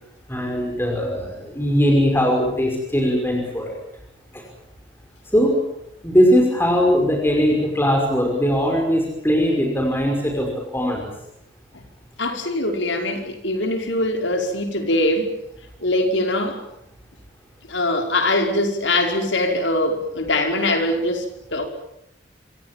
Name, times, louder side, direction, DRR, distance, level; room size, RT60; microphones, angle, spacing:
voice 1, 0.3-3.8 4.3-4.4 5.3-5.6 6.0-11.1, equal, 10° left, 1 dB, 5.6 m, -20 dB
voice 2, 12.2-15.3 15.8-16.6 17.7-21.2 21.5-21.7, left 1 dB, 75° left, 4 dB, 5.5 m, -22 dB
27.5 x 27.0 x 7.6 m, 0.81 s
head